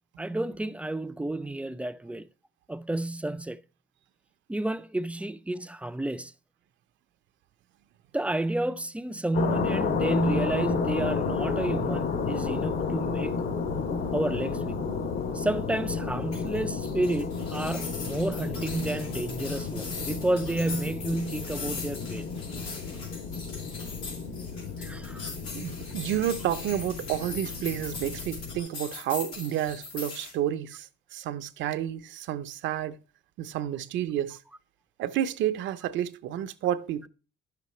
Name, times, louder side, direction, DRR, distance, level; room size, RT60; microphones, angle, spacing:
voice 1, 0.2-2.3 2.7-3.6 4.5-6.3 8.1-13.5 14.1-14.8 15.3-22.2 24.8-25.2, right 1 dB, 5° right, 0.4 m, -30 dB
sound 1, 9.3-28.6, left 5 dB, 70° left, 2.4 m, -32 dB
sound 2, 16.3-30.3, left 4 dB, 90° left, 3.8 m, -41 dB
voice 2, 25.5-33.0 33.4-34.4 35.0-37.1, right 11 dB, 70° right, 0.7 m, -30 dB
10.5 x 6.8 x 3.1 m
cardioid pair, 110°, 20 cm